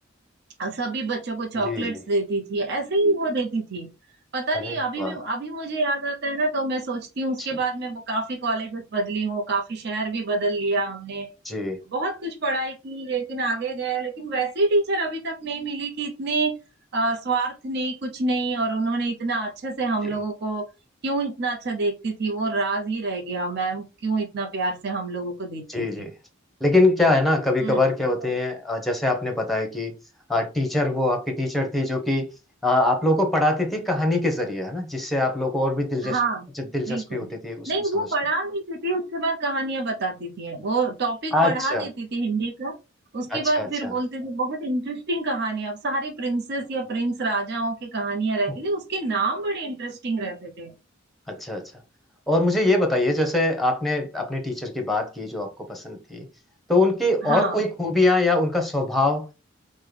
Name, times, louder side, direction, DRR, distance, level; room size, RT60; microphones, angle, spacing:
voice 1, 0.6-3.9 4.3-11.3 11.9-16.6 16.9-20.7 21.0-26.1 27.6-27.8 36.0-36.5 36.9-37.3 37.7-42.7 43.1-50.7 57.2-57.6, right 2 dB, 55° right, 0.7 m, -27 dB
voice 2, 1.6-1.9 4.5-5.2 11.4-11.8 25.7-26.1 26.6-29.9 30.3-32.3 32.6-36.2 36.6-38.1 41.3-41.9 43.3-43.9 51.3-51.6 52.3-56.3 56.7-59.3, left 2 dB, ahead, 0.9 m, -23 dB
5.3 x 2.2 x 3.3 m
head